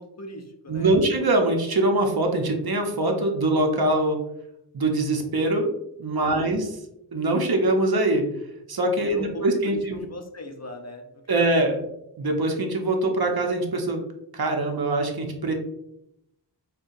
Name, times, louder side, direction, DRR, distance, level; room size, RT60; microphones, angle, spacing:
voice 1, 0.0-0.9 6.2-6.5 9.0-11.5, left 1 dB, 35° left, 3 dB, 0.6 m, -39 dB
voice 2, 0.7-4.2 4.7-5.7 6.0-6.6 7.1-8.2 8.7-10.0 11.3-11.8 12.2-14.0 14.3-15.5, right 2 dB, 55° right, 3 dB, 0.7 m, -23 dB
5.4 x 2.2 x 2.6 m, 0.81 s
wide cardioid pair, 60°, 44 cm